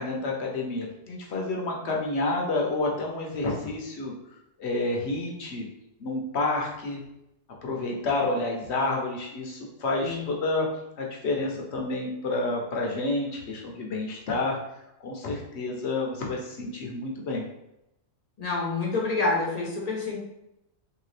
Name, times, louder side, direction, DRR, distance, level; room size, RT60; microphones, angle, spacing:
voice 1, 0.0-4.1 4.6-5.7 6.0-7.0 7.6-10.7 11.0-14.6 15.0-17.4, left 2 dB, 65° left, -1 dB, 1.0 m, -29 dB
voice 2, 18.4-20.2, left 3 dB, 40° left, -2 dB, 0.7 m, -27 dB
3.2 x 2.9 x 3.2 m, 0.85 s
omnidirectional pair, 1.3 m